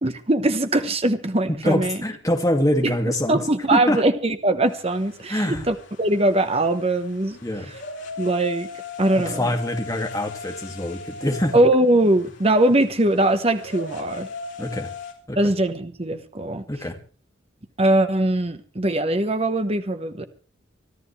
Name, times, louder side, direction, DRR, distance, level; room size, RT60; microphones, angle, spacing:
voice 1, 0.0-2.0 2.8-2.9 3.3-7.4 8.2-8.7 9.0-9.5 11.5-14.3 15.4-16.6 17.8-20.2, right 1 dB, 30° right, 9 dB, 1.2 m, -21 dB
voice 2, 1.6-3.4 3.7-4.0 5.3-5.7 7.4-7.7 9.2-11.6 14.6-14.9 15.3-15.5 16.7-17.0, left 1 dB, 15° left, 2 dB, 2.3 m, -24 dB
sound 1, 4.7-15.1, left 4 dB, 60° left, 3.8 m, -39 dB
25.5 x 13.0 x 3.4 m, 0.38 s
head